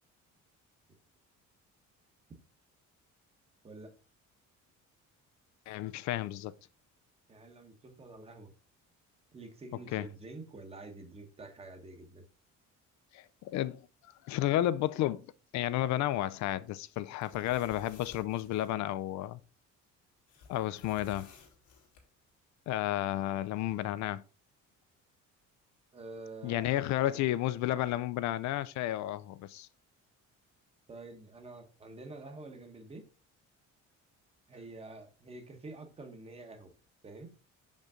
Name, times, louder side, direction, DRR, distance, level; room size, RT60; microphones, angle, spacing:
voice 1, 5.7-6.5 9.9-10.1 13.1-13.8 14.2-15.2 15.5-19.4 20.5-21.3 22.7-24.2 26.4-29.7, left 14 dB, 70° left, 0.4 m, -32 dB
voice 2, 7.3-8.5 9.3-12.2 25.9-27.3 30.9-33.1 34.5-36.7 37.0-37.3, right 2 dB, 20° right, 1.0 m, -48 dB
sound 1, 17.1-18.7 20.3-22.0, left 5 dB, 85° left, 2.1 m, -55 dB
6.4 x 5.3 x 3.6 m
cardioid pair, 175°, 30 cm